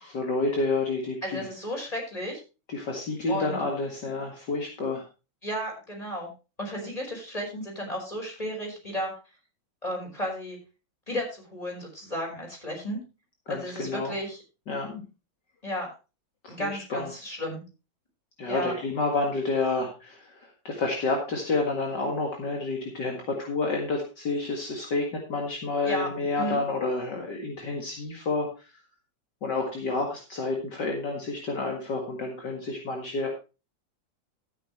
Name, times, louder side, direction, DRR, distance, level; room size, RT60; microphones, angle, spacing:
voice 1, 0.0-1.5 2.7-5.1 13.5-14.1 14.7-15.0 16.4-17.1 18.4-28.7 29.4-33.3, left 3 dB, 60° left, 1 dB, 2.5 m, -29 dB
voice 2, 1.2-2.4 3.3-3.6 5.4-6.3 6.6-9.1 9.8-10.6 11.1-13.0 13.5-14.4 15.6-15.9 16.5-17.6 18.5-18.7 25.9-26.1 26.4-26.6, equal, 15° left, -1 dB, 5.4 m, -33 dB
13.0 x 9.8 x 3.2 m, 0.30 s
omnidirectional pair, 2.1 m